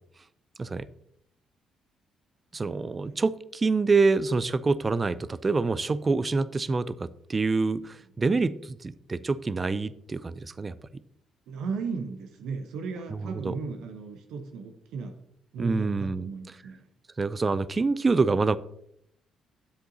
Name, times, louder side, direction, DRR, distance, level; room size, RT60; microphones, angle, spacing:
voice 1, 2.5-10.7 13.2-13.6 15.6-16.2 17.2-18.6, right 4 dB, 30° right, 17 dB, 0.5 m, -26 dB
voice 2, 11.5-15.2 15.5-16.9, right 4 dB, 65° right, 5 dB, 0.9 m, -35 dB
10.0 x 7.8 x 2.8 m, 0.73 s
hypercardioid pair, 45°, 0 cm